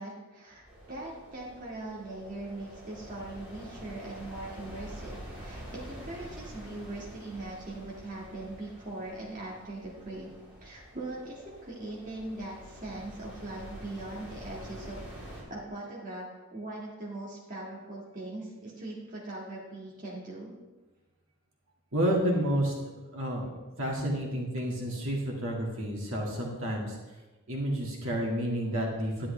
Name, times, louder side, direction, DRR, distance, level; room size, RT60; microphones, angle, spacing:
voice 1, 0.0-10.3 10.6-15.0 15.5-20.5, right 2 dB, 35° right, -5 dB, 1.8 m, -41 dB
sound 1, 0.6-15.4, equal, 10° right, 3.2 m, -47 dB
voice 2, 21.9-23.5 23.8-27.0 27.5-29.3, equal, 65° right, -2 dB, 2.1 m, -30 dB
11.0 x 10.5 x 3.3 m, 1.2 s
head